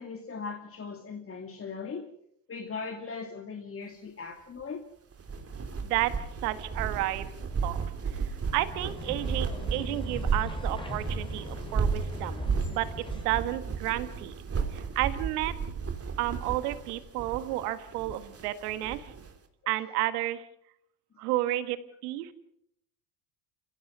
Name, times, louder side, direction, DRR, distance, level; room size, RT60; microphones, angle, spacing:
voice 1, 0.0-2.0 2.5-4.8, left 5 dB, 30° left, 4 dB, 2.6 m, -39 dB
sound 1, 5.1-19.3, right 5 dB, 30° right, 3.2 m, -34 dB
voice 2, 5.8-7.3 7.6-8.3 8.5-14.3 14.7-15.5 16.2-19.1 19.7-20.4 21.2-21.8 22.0-22.3, right 15 dB, 90° right, 12 dB, 1.7 m, -31 dB
sound 2, 8.4-13.4, left 1 dB, 10° left, 4.9 m, -40 dB
29.0 x 16.5 x 6.3 m, 0.72 s
supercardioid pair, 85°, 45 cm